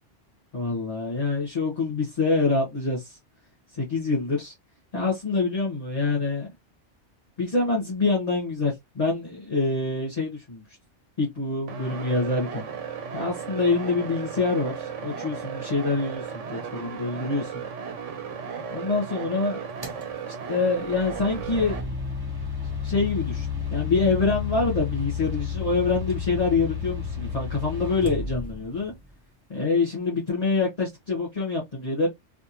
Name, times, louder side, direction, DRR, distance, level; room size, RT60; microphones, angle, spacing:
voice 1, 0.5-3.2 3.7-4.5 4.9-6.5 7.4-10.6 11.2-12.7 13.1-17.6 18.7-19.6 20.3-21.9 22.8-28.9 29.5-32.1, left 3 dB, 35° left, 1.5 m, -26 dB
sound 1, 11.7-21.8, right 6 dB, 85° right, 1.2 m, -35 dB
sound 2, 19.8-20.0 20.9-28.9, left 5 dB, 20° right, 1.1 m, -31 dB
3.4 x 2.6 x 2.8 m
omnidirectional pair, 1.2 m